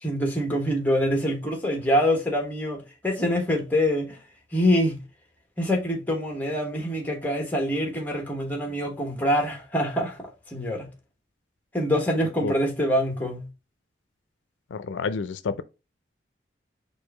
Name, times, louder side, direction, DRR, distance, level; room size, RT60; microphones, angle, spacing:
voice 1, 0.0-4.2 4.5-5.0 5.6-10.9 11.7-13.4, equal, 10° left, 1.1 m, -25 dB
voice 2, 14.7-15.6, left 4 dB, 80° left, 0.4 m, -29 dB
4.6 x 2.6 x 4.2 m
head